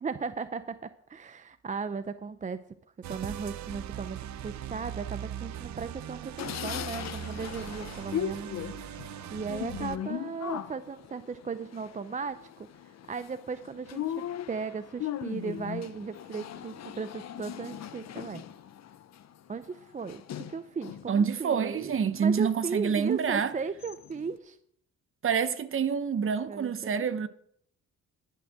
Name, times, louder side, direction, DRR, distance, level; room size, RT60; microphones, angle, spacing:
voice 1, 0.0-2.6 3.1-9.0 9.3-12.5 13.1-18.4 19.5-20.2 20.5-24.6 26.5-27.1, right 5 dB, 25° right, 0.6 m, -37 dB
sound 1, 3.0-10.0, right 10 dB, 65° right, 0.7 m, -40 dB
sound 2, 6.4-21.2 21.6-22.6 23.1-23.2 23.5-24.3, left 10 dB, 60° left, 1.0 m, -39 dB
voice 2, 21.1-23.5 25.2-27.3, right 6 dB, 45° right, 1.0 m, -27 dB
11.5 x 7.3 x 7.6 m
cardioid pair, 90°, 30 cm